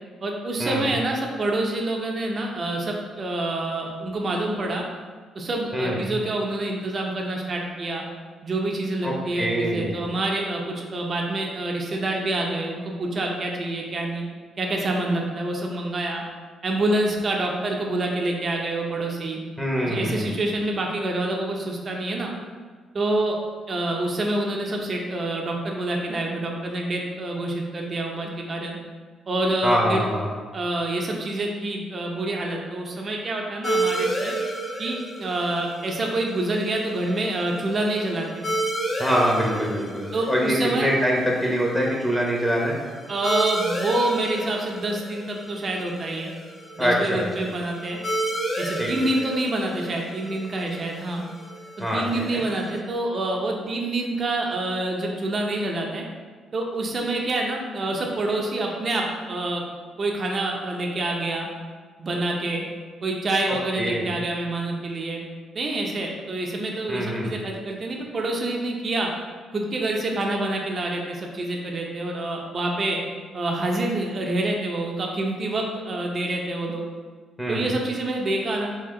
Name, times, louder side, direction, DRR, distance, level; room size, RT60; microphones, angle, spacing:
voice 1, 0.2-4.8 5.3-8.0 8.4-14.2 14.6-16.2 16.6-19.4 19.8-22.3 22.9-23.4 23.7-28.8 29.3-30.1 30.5-34.3 34.8-38.4 40.1-40.9 43.1-46.3 46.8-48.0 48.6-51.2 51.9-56.0 56.5-59.6 60.0-61.5 62.0-62.7 63.0-65.2 65.5-69.1 69.5-73.0 73.3-76.8 77.5-78.8, right 2 dB, 40° right, 0 dB, 0.7 m, -27 dB
voice 2, 9.4-10.0 19.6-20.4 29.6-30.3 39.0-42.8 46.8-47.5 48.8-49.1 51.8-52.0 52.3-52.4 63.8-64.1 66.9-67.3 77.4-77.7, equal, 10° left, -2 dB, 0.9 m, -24 dB
sound 1, 33.6-52.8, right 2 dB, 35° left, 1.0 m, -32 dB
4.2 x 2.9 x 3.7 m, 1.5 s
cardioid pair, 90°, 0 cm